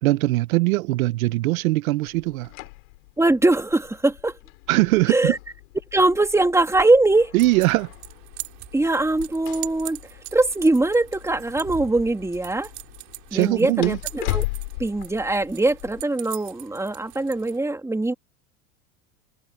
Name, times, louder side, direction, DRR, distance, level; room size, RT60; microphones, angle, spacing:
voice 1, 0.0-2.5 4.7-5.3 7.3-7.9 13.3-14.0, right 19 dB, 80° right, 1.0 m, -21 dB
sound 1, 2.1-16.0, left 24 dB, 75° left, 4.3 m, -37 dB
voice 2, 3.2-4.3 5.1-5.4 5.9-7.3 8.7-10.0 10.3-12.7 13.3-14.4 14.8-18.1, right 2 dB, 5° right, 2.8 m, -21 dB
sound 2, 7.4-17.6, right 22 dB, 55° right, 3.4 m, -41 dB
supercardioid pair, 115°, 42 cm